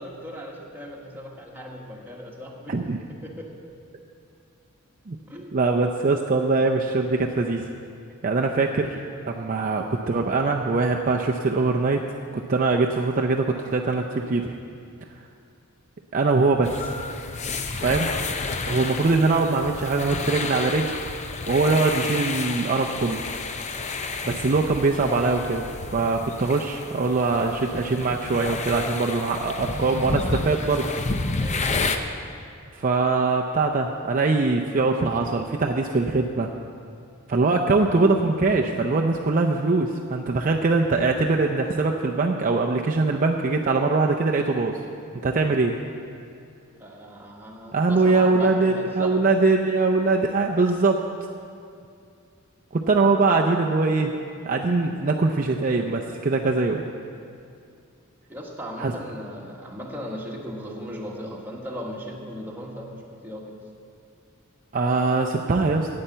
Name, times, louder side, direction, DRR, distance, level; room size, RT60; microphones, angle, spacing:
voice 1, 0.0-2.8 3.2-3.5 5.3-5.5 24.2-24.4 31.4-31.9 46.8-49.2 58.3-63.5, equal, 10° right, -2 dB, 1.6 m, -37 dB
voice 2, 5.5-7.7 8.2-12.0 12.5-14.6 16.1-16.9 17.7-18.1 18.6-20.9 21.5-23.2 24.3-25.7 25.9-30.9 32.7-36.5 37.3-44.7 45.2-45.8 47.7-51.0 52.7-54.1 54.5-56.8 58.8-58.9 64.7-65.9, right 3 dB, 40° right, 1 dB, 0.5 m, -22 dB
sound 1, 16.6-32.0, left 3 dB, 30° left, 0.6 m, -31 dB
10.0 x 8.7 x 7.9 m, 2.5 s
head